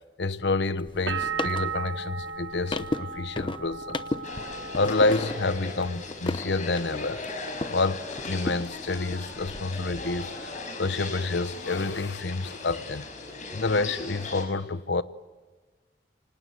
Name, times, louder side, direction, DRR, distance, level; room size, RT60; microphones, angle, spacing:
voice 1, 0.2-4.0 4.7-7.2 7.7-13.1 13.5-15.0, left 3 dB, 65° left, 0.9 m, -28 dB
sound 1, 0.8-7.8 8.1-9.6, left 2 dB, 25° left, 0.8 m, -35 dB
sound 2, 1.1-6.7 7.0-7.7, right 5 dB, 75° right, 1.3 m, -36 dB
sound 3, 4.2-14.4, left 3 dB, 45° left, 5.7 m, -38 dB
28.0 x 25.5 x 7.9 m
head